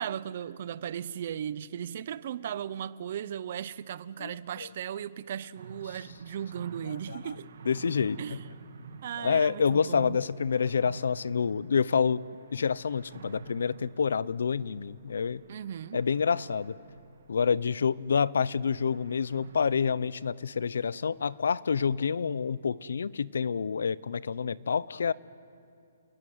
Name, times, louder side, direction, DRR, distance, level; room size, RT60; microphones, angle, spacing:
voice 1, 0.0-7.5 8.2-8.4 9.0-10.2 15.5-16.0, right 9 dB, 35° right, 0.6 m, -37 dB
sound 1, 5.5-19.8, right 4 dB, 50° right, 2.3 m, -49 dB
voice 2, 6.9-7.2 7.7-8.2 9.2-12.2 12.5-15.4 15.9-16.8 17.3-25.1, left 6 dB, 70° left, 0.6 m, -28 dB
29.5 x 20.5 x 9.5 m
hypercardioid pair, 180°, 0 cm